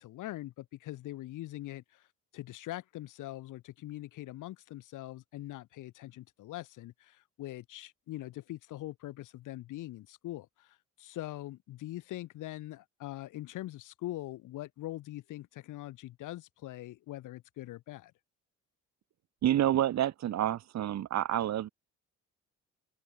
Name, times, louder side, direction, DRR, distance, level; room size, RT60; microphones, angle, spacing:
voice 1, 0.0-2.1 2.3-18.1, left 15 dB, 90° left, 6.6 m, -42 dB
voice 2, 19.4-21.7, right 12 dB, 60° right, 1.1 m, -28 dB
open air
cardioid pair, 90°, 30 cm